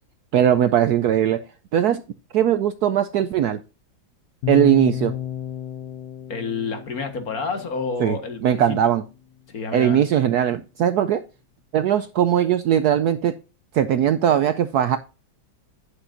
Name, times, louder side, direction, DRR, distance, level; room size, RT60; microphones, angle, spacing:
voice 1, 0.3-1.4 1.7-2.0 2.3-3.6 4.5-5.1 8.0-9.0 9.7-11.2 11.7-13.3 13.7-15.0, right 10 dB, 70° right, 11 dB, 0.9 m, -19 dB
sound 1, 4.4-8.5, left 11 dB, 65° left, 1.1 m, -32 dB
voice 2, 6.3-8.8 9.5-10.0, left 4 dB, 50° left, 7 dB, 1.9 m, -29 dB
11.0 x 8.9 x 2.6 m, 0.32 s
omnidirectional pair, 2.1 m